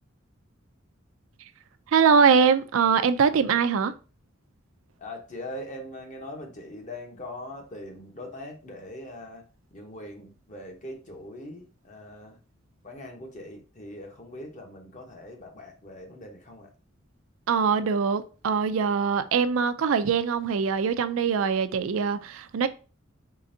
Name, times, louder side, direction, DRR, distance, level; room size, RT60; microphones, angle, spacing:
voice 1, 1.9-3.9 17.5-22.7, right 6 dB, 80° right, 0.4 m, -22 dB
voice 2, 5.0-12.4 12.8-16.7, left 1 dB, 40° left, 0.8 m, -41 dB
3.8 x 3.3 x 2.6 m
head